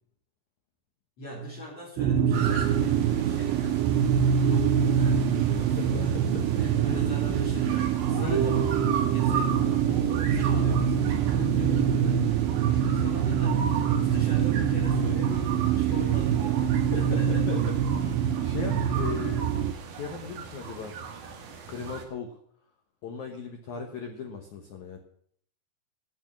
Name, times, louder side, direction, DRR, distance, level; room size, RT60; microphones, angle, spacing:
voice 1, 1.2-6.3 6.6-12.2 12.6-17.5, equal, 40° left, -5 dB, 3.6 m, -41 dB
sound 1, 2.0-19.7, right 8 dB, 85° right, 3.1 m, -24 dB
sound 2, 2.3-22.0, right 6 dB, 65° right, 3.2 m, -38 dB
voice 2, 5.8-6.6 8.1-8.4 9.9-10.0 16.9-19.5 19.9-20.9 21.7-22.4 23.0-25.0, left 5 dB, 70° left, 3 dB, 1.8 m, -37 dB
Harp, 8.3-14.4, right 5 dB, 45° right, 4.1 m, -37 dB
13.0 x 6.3 x 9.8 m, 0.64 s
omnidirectional pair, 5.1 m